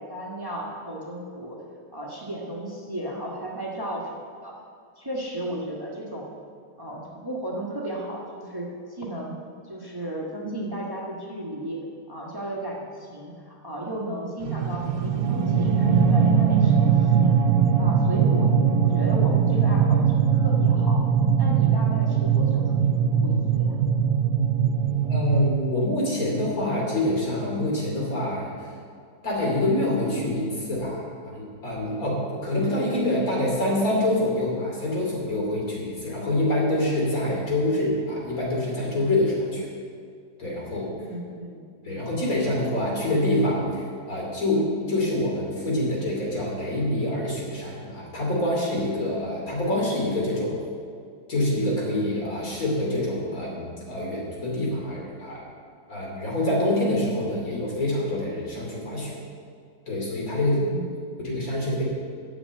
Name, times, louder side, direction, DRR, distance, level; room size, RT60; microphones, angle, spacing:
voice 1, 0.0-1.6 1.9-4.1 4.4-4.5 5.0-6.3 6.8-9.4 9.6-11.8 12.1-17.3 17.8-18.5 18.8-21.0 21.4-22.7 23.2-23.8 41.0-41.7 60.6-61.2, right 1 dB, 15° right, -2 dB, 1.2 m, -34 dB
sound 1, 14.4-25.5, right 7 dB, 75° right, 1.1 m, -21 dB
voice 2, 25.1-28.5 29.2-39.7 40.4-40.9 41.8-50.5 51.3-55.4 55.9-59.2 59.9-60.6 61.2-61.8, left 1 dB, 65° left, -3 dB, 3.3 m, -26 dB
9.9 x 6.5 x 8.6 m, 2.2 s
omnidirectional pair, 1.6 m